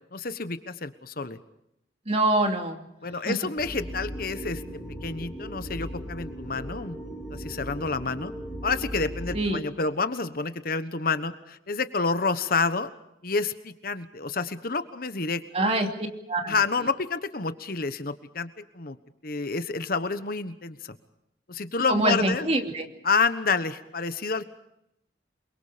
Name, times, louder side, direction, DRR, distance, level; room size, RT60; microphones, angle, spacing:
voice 1, 0.1-1.4 3.0-4.6 5.0-7.0 7.3-8.3 8.6-12.9 13.2-15.7 16.5-18.5 18.7-19.0 19.2-20.9 21.5-22.5 23.0-24.4, left 4 dB, 55° left, 11 dB, 1.2 m, -29 dB
voice 2, 2.1-2.8 3.3-3.4 9.3-9.6 15.5-15.9 16.3-16.5 21.9-22.9, right 2 dB, 35° right, 3 dB, 2.6 m, -24 dB
sound 1, 3.6-9.4, equal, 5° right, 5.5 m, -37 dB
28.5 x 23.0 x 5.1 m, 0.81 s
head